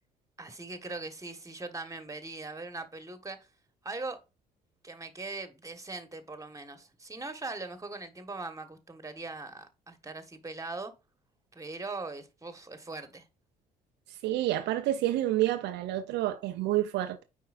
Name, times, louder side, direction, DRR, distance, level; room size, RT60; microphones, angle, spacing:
voice 1, 0.4-3.5 3.8-4.2 4.8-10.9 11.5-13.2, right 3 dB, 15° right, 1.5 m, -40 dB
voice 2, 14.1-17.2, right 14 dB, 65° right, 0.7 m, -29 dB
9.3 x 4.7 x 2.6 m
figure-of-eight pair, 50°, 19 cm